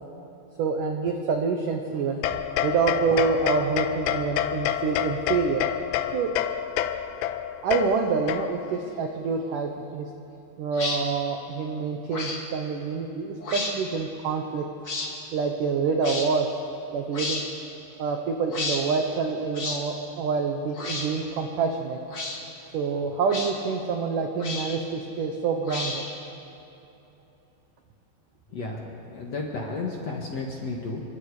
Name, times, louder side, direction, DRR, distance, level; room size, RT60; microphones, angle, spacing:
voice 1, 0.6-5.7 6.1-6.3 7.6-10.1 10.6-14.7 15.3-16.5 16.9-17.4 18.0-22.0 22.7-26.1, right 5 dB, 90° right, 3 dB, 1.8 m, -27 dB
sound 1, 2.2-8.8, left 10 dB, 80° left, 2.6 m, -28 dB
sound 2, 10.7-11.0 12.1-12.4 13.4-13.7 14.8-15.1 16.0-16.3 17.1-17.5 18.5-18.8 19.5-19.8 20.7-21.1 22.1-22.4 23.3-23.5 24.4-24.8 25.7-26.2, left 3 dB, 35° left, 1.9 m, -31 dB
voice 2, 28.5-28.8 29.1-31.0, left 3 dB, 50° left, -1 dB, 2.1 m, -32 dB
27.0 x 25.0 x 5.0 m, 3.0 s
omnidirectional pair, 5.5 m